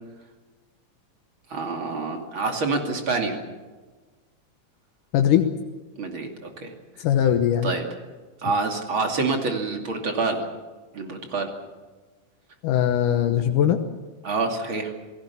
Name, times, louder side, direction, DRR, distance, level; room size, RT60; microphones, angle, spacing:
voice 1, 1.5-3.4 6.0-6.7 7.6-7.8 8.4-10.4 10.9-11.5 14.2-14.9, right 3 dB, 40° right, 3 dB, 3.2 m, -27 dB
voice 2, 5.1-5.5 7.0-7.7 12.6-13.8, left 10 dB, 75° left, 6 dB, 2.6 m, -20 dB
28.0 x 18.0 x 7.1 m, 1.3 s
omnidirectional pair, 3.8 m